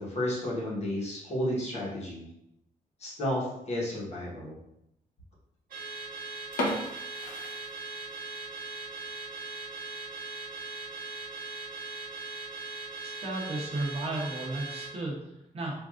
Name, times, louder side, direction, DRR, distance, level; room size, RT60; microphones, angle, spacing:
voice 1, 0.0-2.3 3.0-4.6, left 1 dB, 50° left, -5 dB, 1.1 m, -32 dB
Car / Alarm, 5.7-15.0, right 3 dB, 75° right, 1.1 m, -40 dB
sound 1, 6.5-8.4 8.7-8.8 9.3-9.5 9.9-10.0 10.3-10.4 11.1-11.4, left 1 dB, 75° left, 0.8 m, -35 dB
voice 2, 13.0-15.7, right 2 dB, 45° right, -3 dB, 0.8 m, -34 dB
4.5 x 2.5 x 2.4 m, 0.82 s
wide cardioid pair, 170°, 15 cm